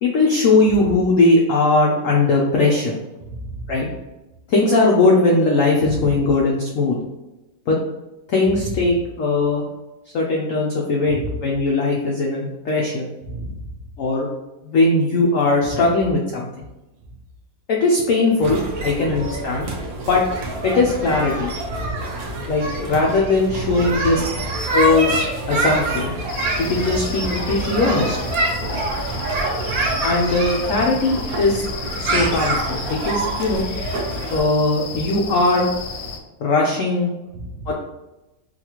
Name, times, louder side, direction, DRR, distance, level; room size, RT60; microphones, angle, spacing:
voice 1, 0.0-3.0 3.7-3.9 4.5-7.0 7.7-7.8 8.3-9.6 10.1-13.1 14.0-14.3 14.6-16.6 17.7-19.7 20.1-20.2 20.6-21.5 22.5-26.1 26.6-28.2 30.0-31.6 32.0-33.7 34.3-35.7 36.4-37.1 37.7-37.8, left 3 dB, 90° left, -2 dB, 0.7 m, -19 dB
voice 2, 3.3-3.7 11.2-11.3 13.3-13.6 15.6-15.8 21.8-22.0 23.9-24.0 29.6-29.8 32.2-32.3 37.3-37.7, right 2 dB, 80° right, 4 dB, 1.2 m, -32 dB
sound 1, 18.4-34.4, right 2 dB, 60° right, 1.1 m, -26 dB
sound 2, 26.3-36.2, left 5 dB, 70° left, 0.9 m, -33 dB
4.0 x 2.3 x 2.9 m, 1.0 s
omnidirectional pair, 2.0 m